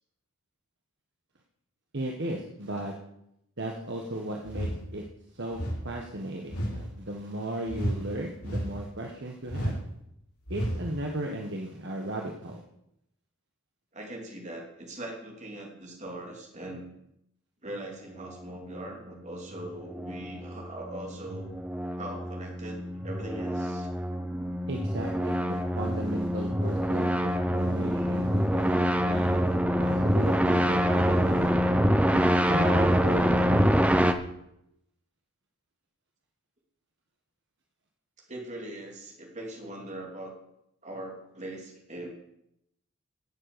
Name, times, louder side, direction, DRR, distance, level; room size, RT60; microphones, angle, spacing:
voice 1, 1.9-2.9 3.6-5.0 5.3-9.8 10.5-12.6 24.7-31.5 32.1-33.8, right 1 dB, 50° right, 1 dB, 1.4 m, -36 dB
sound 1, 4.5-4.9 5.5-5.9 6.5-6.8 7.7-8.0 8.4-8.8 9.5-9.8 10.5-10.8, equal, 85° left, 4.2 m, -31 dB
voice 2, 13.9-16.9 17.6-21.5 22.0-23.9 38.3-40.3 40.8-42.1, right 1 dB, 30° right, 1 dB, 3.1 m, -40 dB
sound 2, 19.6-34.1, equal, 5° right, 0.7 m, -26 dB
17.0 x 7.7 x 6.8 m, 0.80 s
head